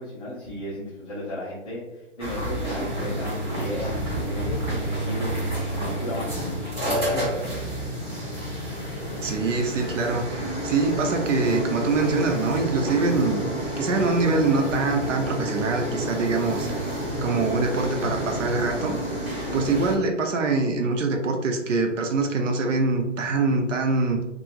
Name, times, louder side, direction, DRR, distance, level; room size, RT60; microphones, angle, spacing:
voice 1, 0.0-6.4 6.8-7.7, left 1 dB, 30° left, -10 dB, 0.5 m, -35 dB
sound 1, 2.2-20.0, equal, 20° right, 1.0 m, -29 dB
voice 2, 9.2-13.5 13.8-16.9 17.2-18.9 19.5-24.4, right 3 dB, 80° right, 3 dB, 0.7 m, -24 dB
2.9 x 2.4 x 2.3 m, 0.96 s
hypercardioid pair, 170°, 37 cm